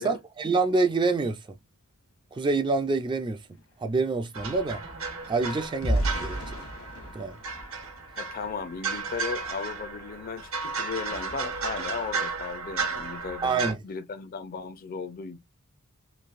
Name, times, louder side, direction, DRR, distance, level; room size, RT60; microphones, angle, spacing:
voice 1, 0.0-1.4 2.3-3.4 3.8-4.8 5.3-6.4 7.1-7.4 13.4-13.8, right 3 dB, 20° right, 0.3 m, -26 dB
sound 1, 3.3-8.7 9.2-9.4 9.8-10.0, right 1 dB, 75° left, 1.1 m, -34 dB
sound 2, 4.3-13.7, right 4 dB, 85° right, 1.0 m, -34 dB
voice 2, 8.1-15.4, left 5 dB, 45° left, 0.4 m, -36 dB
3.1 x 2.6 x 2.4 m
head